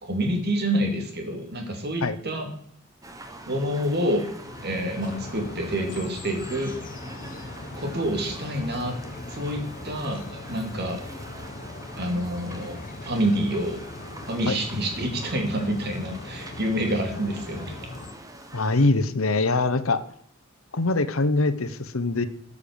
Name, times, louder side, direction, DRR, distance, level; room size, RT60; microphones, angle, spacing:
voice 1, 0.0-2.5 3.5-4.2 4.6-6.7 7.8-8.9 9.3-11.0 12.0-13.8 14.3-17.8, right 1 dB, 50° right, 3 dB, 3.1 m, -27 dB
sound 1, 3.0-18.9, right 1 dB, 15° right, 1.5 m, -44 dB
sound 2, 4.4-18.1, left 2 dB, 40° left, 1.0 m, -40 dB
voice 2, 18.5-20.0 20.7-22.3, left 3 dB, 80° left, 13 dB, 1.1 m, -23 dB
13.5 x 6.8 x 6.9 m, 0.67 s
head